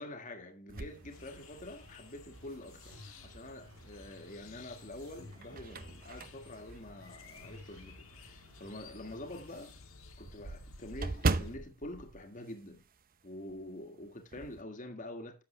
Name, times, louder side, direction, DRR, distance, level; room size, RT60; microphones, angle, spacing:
voice 1, 0.0-9.8 10.2-12.9 13.2-15.4, left 1 dB, 40° left, 1.8 m, -46 dB
sound 1, 0.7-2.0 2.6-2.7 4.1-4.6 5.1-7.8 8.2-8.3 8.7-8.8 9.1-9.2 9.4-13.2 13.5-13.7 14.0-14.6, right 3 dB, 40° right, 0.8 m, -38 dB
sound 2, 0.7-9.7, equal, 85° right, 3.6 m, -56 dB
sound 3, 1.1-11.6, left 4 dB, 80° left, 1.7 m, -56 dB
11.5 x 7.6 x 3.3 m
head